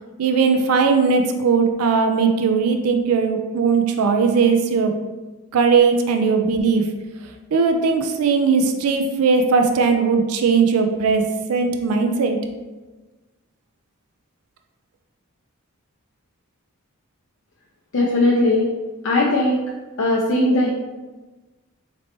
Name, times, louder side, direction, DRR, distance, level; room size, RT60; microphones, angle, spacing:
voice 1, 0.2-4.9 5.5-6.9 7.5-12.4, right 5 dB, 75° right, 5 dB, 0.4 m, -18 dB
voice 2, 17.9-18.7 19.0-19.6 20.0-20.7, left 2 dB, 60° left, -3 dB, 0.5 m, -18 dB
4.2 x 3.0 x 2.9 m, 1.2 s
head